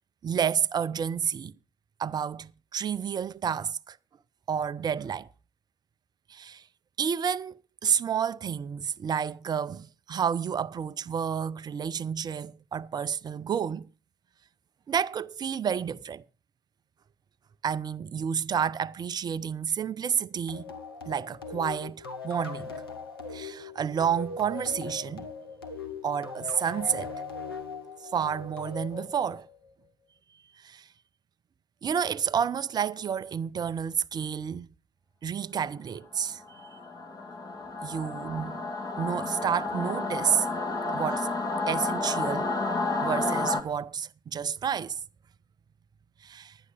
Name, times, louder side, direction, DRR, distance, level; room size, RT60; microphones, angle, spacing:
voice 1, 0.2-1.5 2.0-4.0 4.5-5.3 6.3-6.6 7.0-13.9 14.9-16.2 17.6-20.7 21.1-22.7 23.3-25.3 26.0-27.1 28.1-29.5 30.6-30.9 31.8-34.7 35.2-36.8 37.8-38.6 39.0-40.5 40.9-41.3 41.7-42.5 43.0-45.0 46.2-46.6, right 7 dB, 35° right, 0.5 m, -30 dB
sound 1, 20.5-29.7, left 4 dB, 90° left, 1.0 m, -39 dB
Singing / Musical instrument, 36.4-43.6, left 3 dB, 35° left, 1.6 m, -31 dB
11.5 x 9.6 x 4.9 m
figure-of-eight pair, 55°, 12 cm